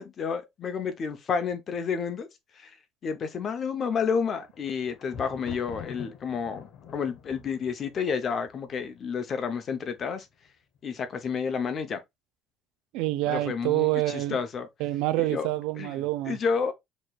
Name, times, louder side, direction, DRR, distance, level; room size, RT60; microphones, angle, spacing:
voice 1, 0.0-2.3 2.6-2.7 3.0-6.6 6.9-10.2 10.8-12.0 13.3-14.7 15.2-15.5 15.8-15.9 16.3-16.7, left 6 dB, 40° left, 0.8 m, -30 dB
Thunder, 4.2-9.2 10.0-10.5 10.7-10.8, left 7 dB, 55° left, 1.4 m, -45 dB
voice 2, 12.9-14.4 14.8-16.4, right 17 dB, 85° right, 0.4 m, -27 dB
6.3 x 3.1 x 2.4 m
cardioid pair, 140°, 0 cm